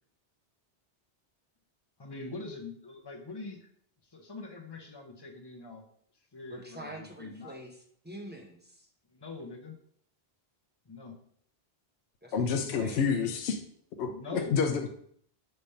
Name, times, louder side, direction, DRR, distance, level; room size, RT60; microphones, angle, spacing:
voice 1, 2.0-3.7 4.0-5.8 6.1-7.5 9.1-9.8 10.8-11.1 12.6-13.0 14.1-14.6, left 3 dB, 25° left, 2 dB, 0.9 m, -43 dB
voice 2, 6.5-8.9 12.2-13.1, equal, 10° right, 0 dB, 0.9 m, -46 dB
voice 3, 12.3-13.6 14.0-15.0, left 6 dB, 75° left, 5 dB, 0.8 m, -29 dB
5.1 x 3.4 x 5.6 m, 0.64 s
omnidirectional pair, 1.1 m